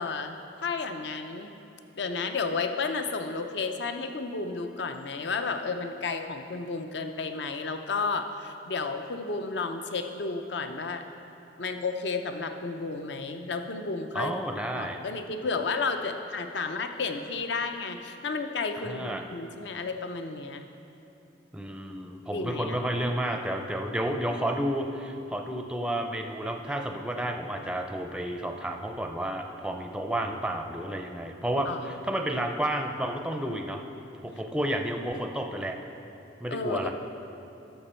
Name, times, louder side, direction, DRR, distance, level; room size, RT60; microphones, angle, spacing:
voice 1, 0.0-1.5 2.0-11.0 11.6-14.3 14.7-20.6 22.3-22.8 31.6-31.9 36.5-36.9, left 4 dB, 65° left, 7 dB, 0.6 m, -32 dB
voice 2, 14.1-15.0 18.8-19.2 21.5-33.8 34.2-35.8 36.4-36.9, right 1 dB, 5° right, 4 dB, 0.4 m, -31 dB
12.0 x 7.0 x 4.4 m, 3.0 s
head